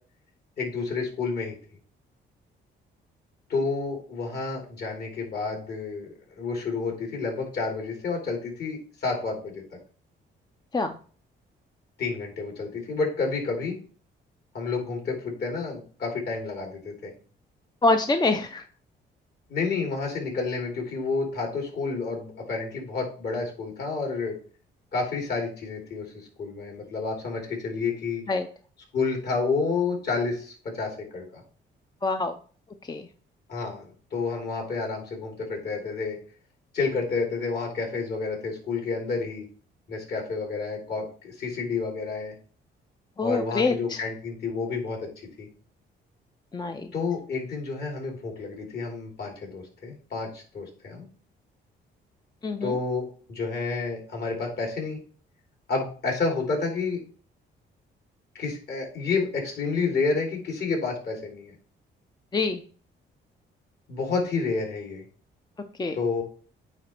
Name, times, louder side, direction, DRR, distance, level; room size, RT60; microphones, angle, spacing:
voice 1, 0.6-1.5 3.5-6.1 6.4-9.6 12.0-13.8 14.5-17.1 19.5-24.4 24.9-28.2 28.9-31.4 33.5-36.2 36.7-39.5 39.9-42.3 43.2-45.1 45.4-45.5 46.9-51.1 52.6-55.0 55.7-57.0 58.3-61.5 63.9-65.0 65.9-66.2, left 4 dB, 55° left, 0 dB, 3.3 m, -30 dB
voice 2, 17.8-18.6 28.3-28.5 32.0-32.4 32.9-33.1 43.2-44.0 46.5-46.9 52.4-52.8 62.3-62.6 65.8-66.0, left 3 dB, 20° left, 6 dB, 0.6 m, -25 dB
9.2 x 3.2 x 4.5 m, 0.41 s
cardioid pair, 90°, 20 cm